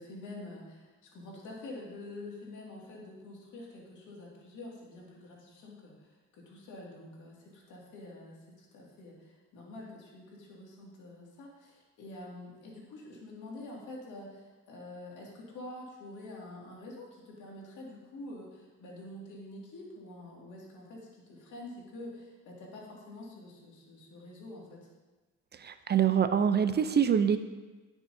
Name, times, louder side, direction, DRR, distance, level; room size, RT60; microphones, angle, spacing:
voice 1, 0.0-24.9, left 2 dB, 85° left, -3 dB, 2.2 m, -47 dB
voice 2, 25.6-27.4, right 8 dB, 35° right, 10 dB, 0.4 m, -25 dB
10.0 x 6.1 x 2.7 m, 1.2 s
cardioid pair, 90°, 30 cm